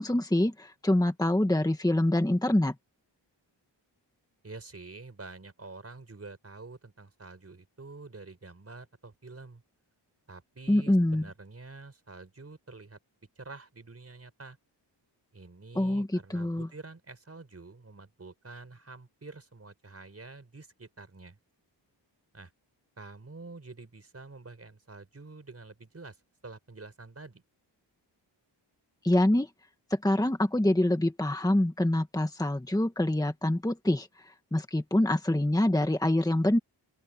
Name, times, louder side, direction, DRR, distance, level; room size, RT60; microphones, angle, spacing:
voice 1, 0.0-2.7 10.7-11.3 15.8-16.7 29.0-29.5 29.9-36.6, left 1 dB, 10° left, 1.7 m, -25 dB
voice 2, 4.4-9.6 10.3-13.0 13.4-14.6 15.3-21.4 22.3-22.5 23.0-26.2 26.4-27.4, right 3 dB, 35° right, 5.1 m, -47 dB
open air
wide cardioid pair, 130°, 43 cm